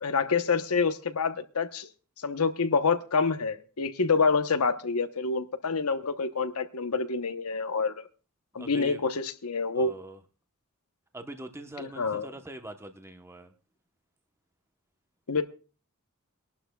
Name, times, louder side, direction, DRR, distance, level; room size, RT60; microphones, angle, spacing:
voice 1, 0.0-1.9 2.2-8.1 8.5-9.9 11.8-12.3 15.3-15.4, left 4 dB, 75° left, 0.9 m, -27 dB
voice 2, 8.5-9.0 9.7-10.2 11.1-13.5, right 1 dB, 10° right, 0.9 m, -42 dB
26.0 x 11.5 x 2.3 m
head